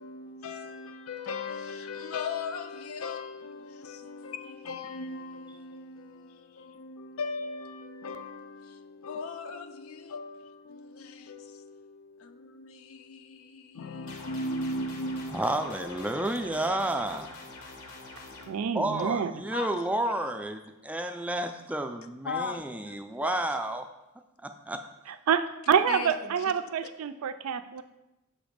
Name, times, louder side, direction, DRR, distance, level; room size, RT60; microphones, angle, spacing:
voice 1, 0.0-16.6 18.4-18.8 19.5-19.8 22.2-23.4 25.9-26.3, left 3 dB, 70° left, 0.4 m, -38 dB
sound 1, 14.1-18.5, left 3 dB, 85° left, 0.9 m, -45 dB
voice 2, 15.3-17.4 18.7-23.9 24.4-24.8, right 1 dB, 5° right, 0.3 m, -31 dB
voice 3, 18.5-19.4 25.1-27.8, right 7 dB, 85° right, 0.4 m, -27 dB
6.3 x 3.0 x 5.1 m
head